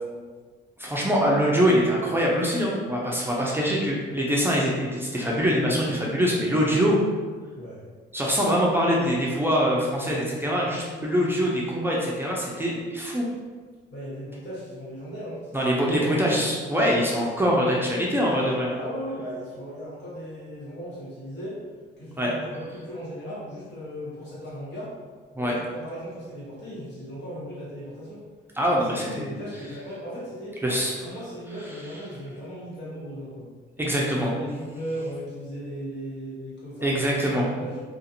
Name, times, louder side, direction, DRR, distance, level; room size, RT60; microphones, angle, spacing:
voice 1, 0.8-7.0 8.1-13.2 15.5-18.7 22.2-22.3 25.4-25.5 28.6-29.3 30.6-30.9 33.8-34.3 36.8-37.4, equal, 10° right, -4 dB, 0.5 m, -23 dB
voice 2, 13.9-16.2 18.7-21.6 22.0-24.9 25.4-28.2 28.8-30.6 31.0-33.5 34.1-37.8, equal, 65° left, -8 dB, 1.4 m, -37 dB
2.4 x 2.4 x 2.8 m, 1.5 s
cardioid pair, 95°, 19 cm